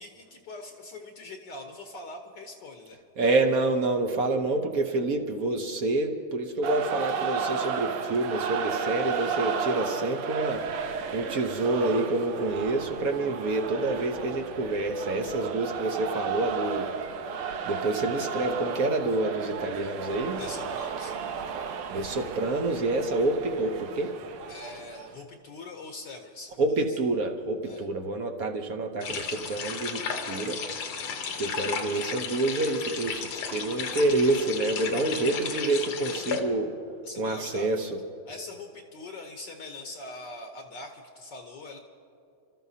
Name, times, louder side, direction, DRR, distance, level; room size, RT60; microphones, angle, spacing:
voice 1, 0.0-3.0 20.3-21.1 24.5-27.0 27.6-27.9 37.0-37.7 38.3-41.8, left 2 dB, 60° left, 3 dB, 1.4 m, -42 dB
voice 2, 3.2-10.6 11.1-16.9 17.3-17.4 17.7-20.4 21.9-24.1 26.6-30.6 31.4-36.7 37.2-37.9, right 2 dB, 60° right, 5 dB, 1.0 m, -27 dB
sound 1, 6.6-25.1, right 6 dB, 90° right, 1.7 m, -33 dB
sound 2, 29.0-36.4, left 6 dB, 80° left, 2.0 m, -34 dB
30.0 x 13.5 x 2.8 m, 2.5 s
omnidirectional pair, 2.3 m